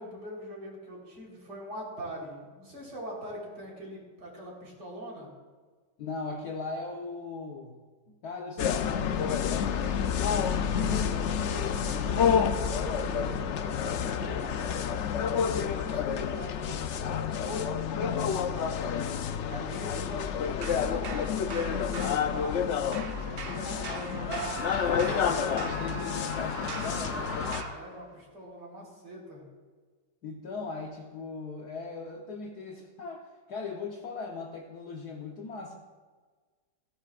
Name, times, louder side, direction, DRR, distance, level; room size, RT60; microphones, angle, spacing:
voice 1, 0.0-5.3 10.7-15.0 15.5-19.0 19.5-22.7 23.2-24.6 27.7-29.4, equal, 60° right, -3 dB, 4.5 m, -42 dB
voice 2, 6.0-7.8 8.1-10.5 23.3-24.1 25.0-27.5 30.2-35.8, left 4 dB, 60° left, 0 dB, 1.5 m, -39 dB
sound 1, 8.6-27.6, left 7 dB, 90° left, 0.6 m, -29 dB
sound 2, 20.6-22.7 22.9-27.8, right 6 dB, 80° right, 0.5 m, -43 dB
Screaming, 24.2-28.0, equal, 15° right, 1.7 m, -38 dB
17.0 x 16.5 x 2.5 m, 1.4 s
omnidirectional pair, 2.0 m